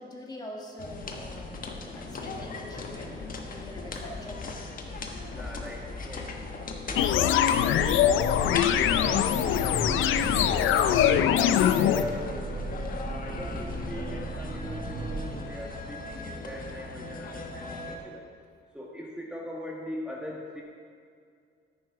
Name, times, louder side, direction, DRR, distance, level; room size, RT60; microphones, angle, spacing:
voice 1, 0.0-4.6 10.4-10.5, left 1 dB, 20° left, -1 dB, 1.9 m, -45 dB
sound 1, 0.8-18.0, left 3 dB, 45° left, 1.3 m, -37 dB
voice 2, 5.3-6.3 6.9-10.7 11.3-12.5 13.2-18.2 18.7-20.6, left 1 dB, 5° right, -3 dB, 1.5 m, -41 dB
sound 2, 7.0-12.0, left 10 dB, 80° left, 0.5 m, -23 dB
sound 3, 7.7-16.9, right 3 dB, 40° right, 1.4 m, -37 dB
10.0 x 9.4 x 4.8 m, 2.2 s
cardioid pair, 90°, 20 cm